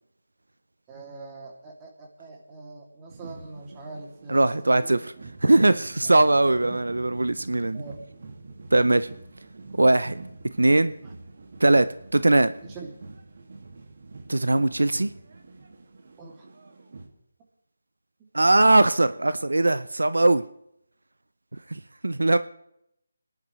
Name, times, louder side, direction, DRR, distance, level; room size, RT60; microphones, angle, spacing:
voice 1, 0.9-5.0 6.0-6.1 6.6-6.8 7.7-8.0 12.6-12.9 16.2-16.5, right 3 dB, 20° right, 0 dB, 2.7 m, -43 dB
sound 1, 3.1-17.1, right 3 dB, 55° right, 2.2 m, -45 dB
voice 2, 4.3-5.0 5.4-7.8 8.7-9.1 9.8-10.2 10.6-10.9 11.6-11.9 12.1-12.5 14.3-15.1 18.3-20.4 21.7-22.4, right 2 dB, 90° right, 14 dB, 0.6 m, -20 dB
28.5 x 11.0 x 3.2 m, 0.78 s
figure-of-eight pair, 160°, 0 cm